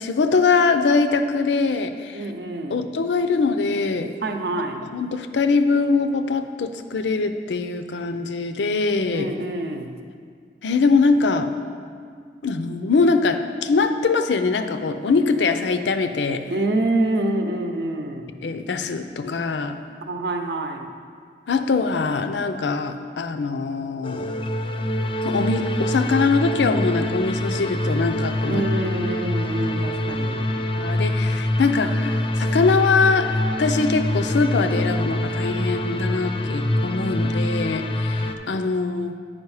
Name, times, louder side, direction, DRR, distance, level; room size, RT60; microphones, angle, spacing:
voice 1, 0.0-2.2 2.7-4.1 4.9-9.3 10.6-11.5 12.4-16.4 18.4-19.8 21.5-24.4 25.2-28.6 30.8-39.1, left 4 dB, 80° left, 9 dB, 0.5 m, -22 dB
voice 2, 2.1-2.8 4.2-4.8 9.1-10.0 16.5-18.3 20.0-20.9 28.4-30.5, right 2 dB, 65° right, 4 dB, 0.7 m, -26 dB
sound 1, 24.0-38.4, left 1 dB, 30° left, 0.4 m, -25 dB
9.6 x 5.1 x 4.8 m, 2.1 s
head